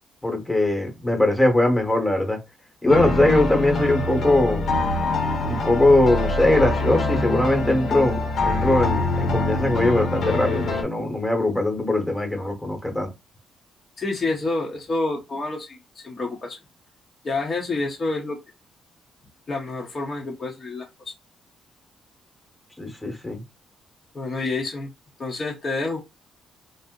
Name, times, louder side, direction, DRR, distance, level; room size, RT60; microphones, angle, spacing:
voice 1, 0.2-2.4 2.8-4.7 5.4-13.1 22.8-23.4, left 2 dB, 10° left, 1.0 m, -21 dB
sound 1, 2.9-10.8, left 2 dB, 60° left, 0.9 m, -24 dB
voice 2, 14.0-15.8 16.0-16.6 17.2-18.4 19.5-20.8 24.1-24.9 25.2-26.0, left 3 dB, 35° left, 0.7 m, -28 dB
2.7 x 2.0 x 3.6 m
cardioid pair, 90°, 0 cm